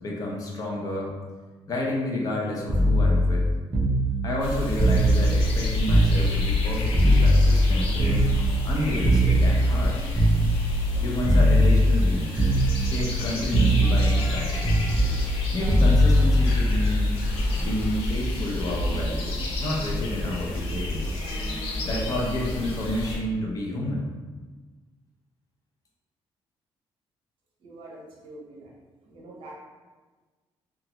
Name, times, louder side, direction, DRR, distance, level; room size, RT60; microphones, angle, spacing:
voice 1, 0.0-1.1 1.7-3.5 4.2-8.3 8.6-10.1 11.0-12.5 12.8-14.8 15.5-17.1 17.6-21.1 21.8-24.1, left 1 dB, 35° left, -2 dB, 0.5 m, -30 dB
Scary bit, 2.7-6.6 6.9-11.0 11.3-12.1 12.4-13.3 13.5-17.5 18.7-19.0, equal, 20° right, 0.5 m, -21 dB
sound 1, 4.4-23.2, left 1 dB, 75° left, 0.7 m, -29 dB
voice 2, 27.6-28.8 29.1-29.5, right 2 dB, 65° right, -3 dB, 0.7 m, -45 dB
2.9 x 2.3 x 2.9 m, 1.3 s
cardioid pair, 175°, 10 cm